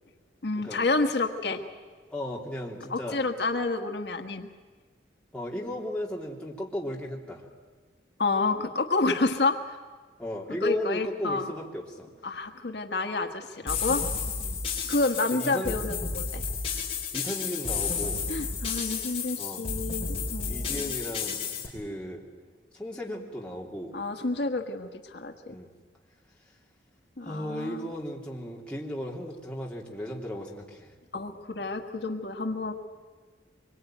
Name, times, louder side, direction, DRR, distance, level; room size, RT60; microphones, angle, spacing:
voice 1, 0.4-1.6 2.9-4.5 8.2-9.6 10.6-11.5 12.2-14.0 14.9-16.4 18.3-20.9 23.9-25.6 27.2-27.9 31.1-32.7, left 3 dB, 65° left, 5 dB, 1.4 m, -29 dB
voice 2, 2.1-3.2 5.3-7.4 10.2-12.1 13.6-13.7 14.4-14.6 15.3-15.8 17.1-18.2 19.4-19.6 20.4-21.4 21.7-22.2 22.7-23.9 25.5-25.7 27.2-31.3 32.5-32.6, equal, 5° left, -3 dB, 3.2 m, -35 dB
sound 1, 13.7-21.7, left 5 dB, 30° left, 5.2 m, -32 dB
24.5 x 23.0 x 9.2 m, 1.5 s
head